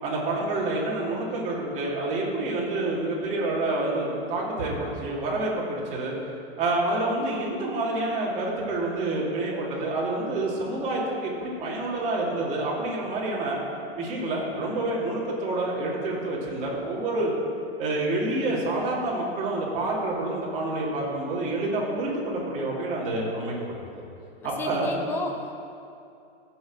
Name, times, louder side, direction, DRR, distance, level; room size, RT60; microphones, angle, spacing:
voice 1, 0.0-6.2 6.6-13.6 14.0-17.3 17.8-23.5 23.9-24.0 24.4-24.9, right 2 dB, 25° right, -6 dB, 2.8 m, -28 dB
voice 2, 24.4-25.5, left 2 dB, 5° left, 1 dB, 0.7 m, -32 dB
15.5 x 6.3 x 7.5 m, 2.6 s
supercardioid pair, 165°, 31 cm